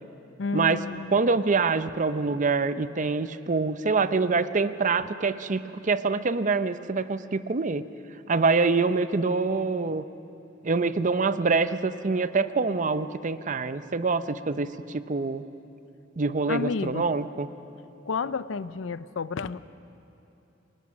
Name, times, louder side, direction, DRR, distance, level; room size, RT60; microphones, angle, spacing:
voice 1, 0.4-1.2 16.5-17.1 18.1-19.6, left 4 dB, 75° left, 15 dB, 0.6 m, -31 dB
voice 2, 1.1-7.8 8.3-10.0 10.6-15.4 16.2-17.5, right 4 dB, 40° right, 12 dB, 0.6 m, -25 dB
25.0 x 19.5 x 6.2 m, 2.9 s
head